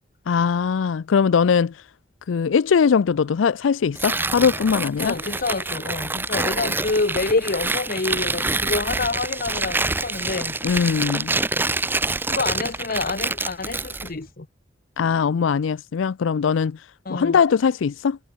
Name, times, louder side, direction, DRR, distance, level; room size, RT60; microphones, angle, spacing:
voice 1, 0.3-1.9 2.3-5.1 10.6-11.3 15.0-18.2, left 6 dB, 90° left, 0.4 m, -21 dB
Tearing, 3.9-14.1, right 3 dB, 10° right, 0.7 m, -26 dB
voice 2, 5.0-10.6 12.3-14.5 17.0-17.4, left 3 dB, 50° left, 1.0 m, -27 dB
head